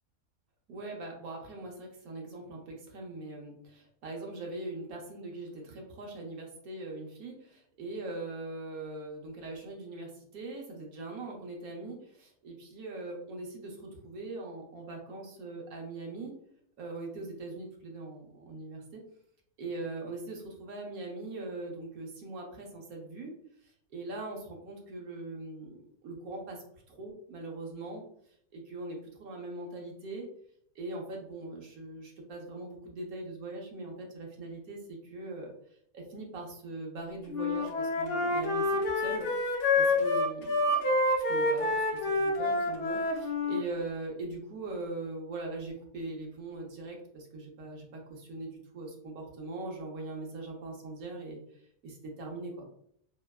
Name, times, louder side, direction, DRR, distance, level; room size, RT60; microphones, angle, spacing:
voice 1, 0.7-16.3 16.8-19.0 19.6-23.3 23.6-25.8 26.0-28.0 28.5-30.3 30.7-35.5 35.9-39.3 39.8-40.7 41.3-51.4 51.8-52.7, right 2 dB, 75° right, 0 dB, 1.2 m, -41 dB
Wind instrument woodwind instrument, 37.3-43.6, left 2 dB, 60° left, 0.6 m, -28 dB
3.1 x 2.2 x 2.2 m, 0.67 s
omnidirectional pair, 1.5 m